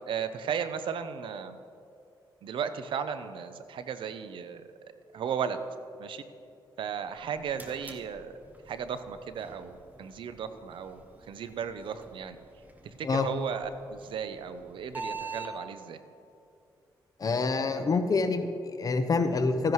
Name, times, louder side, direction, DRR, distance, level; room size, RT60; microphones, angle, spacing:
voice 1, 0.1-1.6 2.4-4.6 5.1-5.6 6.0-6.2 6.8-8.3 8.7-12.4 13.0-16.0, right 7 dB, 75° right, 10 dB, 0.6 m, -35 dB
sound 1, 7.2-15.5, right 3 dB, 20° right, 1.1 m, -46 dB
voice 2, 17.2-19.7, left 4 dB, 45° left, 7 dB, 0.8 m, -27 dB
14.0 x 10.5 x 3.1 m, 2.5 s
cardioid pair, 75°, 9 cm